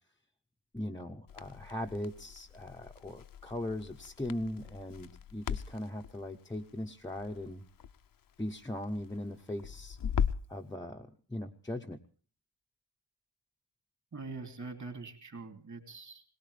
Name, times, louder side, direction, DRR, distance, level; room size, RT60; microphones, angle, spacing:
voice 1, 0.7-7.6 8.4-10.0 10.5-12.0, left 1 dB, 10° left, 0 dB, 0.8 m, -39 dB
Crackle, 1.3-10.6, left 7 dB, 45° left, 0.7 m, -39 dB
voice 2, 14.1-16.2, right 4 dB, 40° right, 7 dB, 3.0 m, -43 dB
21.5 x 19.0 x 3.3 m, 0.40 s
wide cardioid pair, 170°, 46 cm